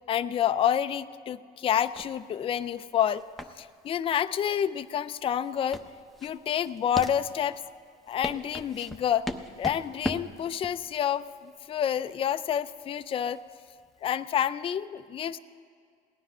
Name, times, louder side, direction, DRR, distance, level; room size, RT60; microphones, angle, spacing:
voice 1, 0.1-3.2 3.6-5.8 6.2-7.6 8.1-9.3 9.6-13.4 14.0-15.4, left 9 dB, 35° left, 13 dB, 0.3 m, -28 dB
sound 1, 1.8-14.5, left 1 dB, ahead, 0.7 m, -40 dB
17.5 x 9.9 x 5.4 m, 2.2 s
cardioid pair, 110°, 17 cm